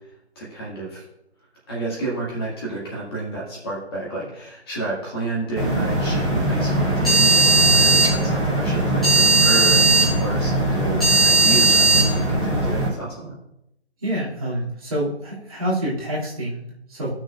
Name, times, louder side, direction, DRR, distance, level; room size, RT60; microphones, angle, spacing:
voice 1, 0.4-1.1 1.7-13.3, right 2 dB, 20° left, -4 dB, 2.0 m, -30 dB
sound 1, 5.6-12.9, right 2 dB, ahead, 0.9 m, -18 dB
voice 2, 14.0-17.1, right 1 dB, 30° right, -6 dB, 2.6 m, -27 dB
15.5 x 6.3 x 2.5 m, 0.82 s
figure-of-eight pair, 150°, 34 cm